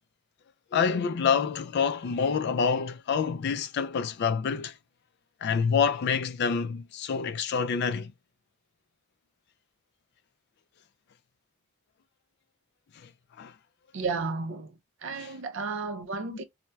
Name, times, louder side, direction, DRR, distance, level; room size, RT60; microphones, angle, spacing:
voice 1, 0.7-4.7 5.4-8.1 13.4-13.5 15.2-15.3 16.3-16.4, left 6 dB, 50° left, 0.3 m, -27 dB
voice 2, 13.9-14.7 15.0-16.4, right 4 dB, 60° right, 0.5 m, -33 dB
4.3 x 2.1 x 2.2 m
head